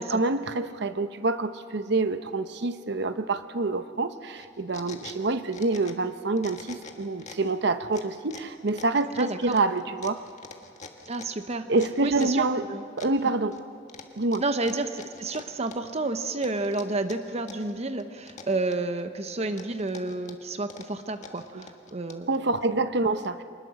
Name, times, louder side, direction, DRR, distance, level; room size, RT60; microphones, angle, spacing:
voice 1, 0.0-10.2 11.7-12.7 13.0-13.6 14.2-14.4 21.5-21.7 22.3-23.4, right 3 dB, 65° right, 10 dB, 0.8 m, -27 dB
sound 1, 4.4-6.1 6.4-7.5 7.9-12.5 13.0-13.6 13.9-16.0 16.4-17.7 18.0-19.0 19.4-22.4, left 5 dB, 40° left, 1.5 m, -45 dB
voice 2, 9.1-9.6 11.1-11.7 12.0-12.8 14.4-22.3, right 2 dB, 35° right, 9 dB, 0.8 m, -30 dB
25.0 x 20.5 x 6.4 m, 2.4 s
head